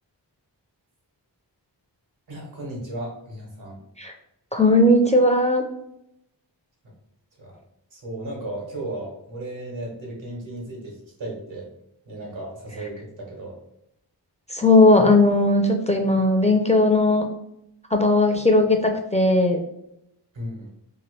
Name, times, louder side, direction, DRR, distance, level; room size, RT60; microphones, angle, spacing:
voice 1, 2.3-3.8 7.4-7.5 7.9-11.7 12.1-13.6 20.3-20.7, right 1 dB, 85° right, -2 dB, 1.2 m, -35 dB
voice 2, 4.5-5.6 14.5-17.2 17.9-19.6, left 2 dB, 15° left, 3 dB, 0.4 m, -17 dB
2.9 x 2.5 x 3.1 m, 0.80 s
wide cardioid pair, 50°, 45 cm